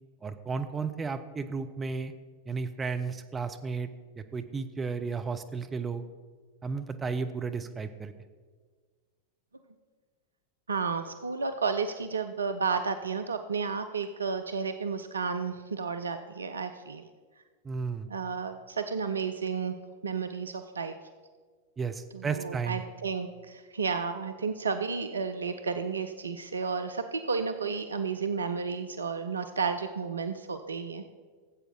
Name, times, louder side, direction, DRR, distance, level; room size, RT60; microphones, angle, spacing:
voice 1, 0.2-2.1 2.5-3.9 4.2-6.0 6.6-8.1 17.6-18.1 21.8-22.8, right 5 dB, 15° right, 8 dB, 0.6 m, -33 dB
voice 2, 10.7-17.1 18.1-19.8 20.0-20.9 22.1-31.0, right 5 dB, 75° right, 8 dB, 0.5 m, -32 dB
13.5 x 8.0 x 3.9 m, 1.5 s
figure-of-eight pair, 90°, 0 cm